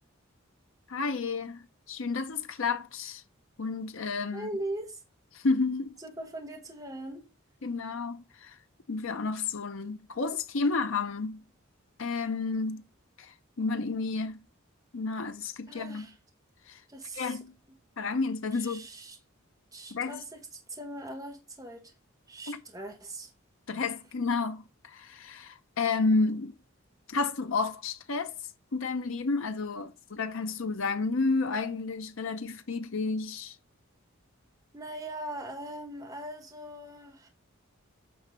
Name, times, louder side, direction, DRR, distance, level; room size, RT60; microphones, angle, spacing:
voice 1, 0.9-3.2 3.6-4.5 5.3-6.0 7.6-8.6 8.9-11.4 12.0-12.8 13.2-14.4 14.9-16.1 16.7-16.8 17.1-17.5 18.0-18.9 19.9-20.2 22.5-22.6 23.7-26.5 27.1-28.3 28.7-33.6, left 4 dB, 70° left, 0.7 m, -31 dB
voice 2, 4.3-5.0 6.0-7.3 15.7-16.1 16.9-17.4 18.5-19.2 19.7-21.9 22.3-23.3 34.7-37.3, right 1 dB, 15° right, 1.6 m, -40 dB
8.8 x 3.3 x 5.2 m
head